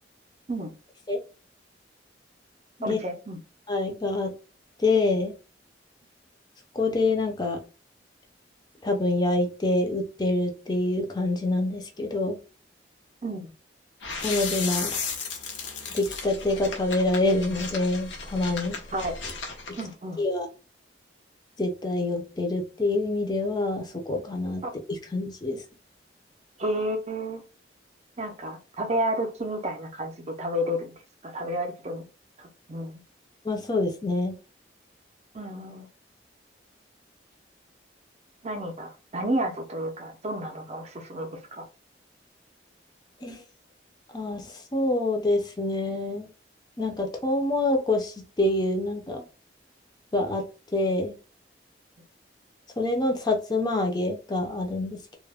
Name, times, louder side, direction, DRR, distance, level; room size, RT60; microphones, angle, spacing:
voice 1, 2.8-3.4 13.2-13.5 18.9-19.2 19.8-20.2 24.6-24.7 26.6-27.4 28.2-30.9 31.2-32.0 32.4-33.0 35.3-35.9 38.4-41.7, right 1 dB, 35° right, 6 dB, 0.5 m, -31 dB
voice 2, 3.7-4.3 4.8-5.3 6.8-7.6 8.8-12.4 14.2-14.9 15.9-18.8 20.2-20.5 21.6-24.6 24.9-25.6 33.4-34.3 43.2-43.4 44.1-46.3 46.8-49.2 50.1-50.4 50.7-51.1 52.8-55.2, left 2 dB, 20° left, 3 dB, 0.5 m, -26 dB
sound 1, 14.0-19.8, left 5 dB, 85° left, 0.7 m, -34 dB
2.3 x 2.1 x 3.3 m, 0.33 s
head